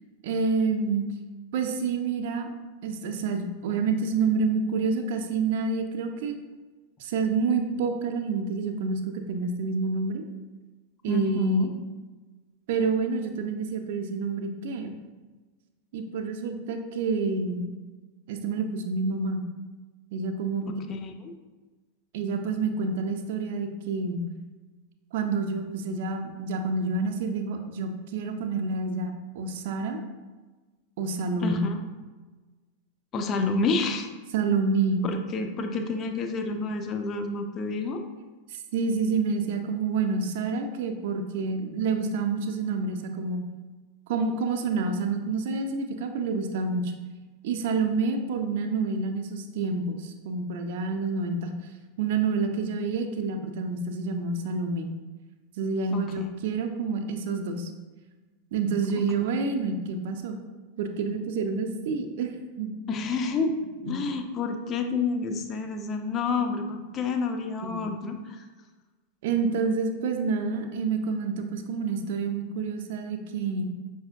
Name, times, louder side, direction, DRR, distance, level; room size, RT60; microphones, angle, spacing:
voice 1, 0.2-1.1 1.5-2.5 2.8-6.4 7.0-10.2 11.0-11.7 12.7-15.0 15.9-17.7 18.3-19.4 20.1-20.7 22.1-24.3 25.1-30.0 31.0-31.6 34.3-35.1 35.5-35.6 38.5-43.4 44.1-46.9 47.4-51.5 52.0-54.9 55.6-57.7 58.5-60.4 60.8-62.3 62.6-62.7 63.8-64.1 67.6-67.9 69.2-73.6, right 4 dB, 50° right, 5 dB, 0.4 m, -28 dB
voice 2, 11.1-11.7 21.0-21.3 31.4-31.7 33.1-34.1 35.0-38.0 55.9-56.0 62.9-63.6 63.8-68.4, left 3 dB, 30° left, 5 dB, 0.3 m, -29 dB
5.4 x 2.6 x 2.5 m, 1.3 s
figure-of-eight pair, 90°, 0 cm